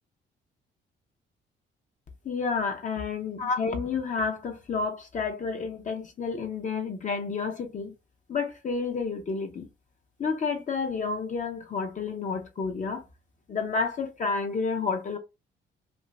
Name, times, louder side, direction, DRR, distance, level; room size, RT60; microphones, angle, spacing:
voice 1, 2.2-7.9 8.3-9.7 10.2-13.0 13.5-15.2, left 4 dB, 40° left, 0.6 m, -30 dB
2.5 x 2.4 x 3.0 m
cardioid pair, 90°, 20 cm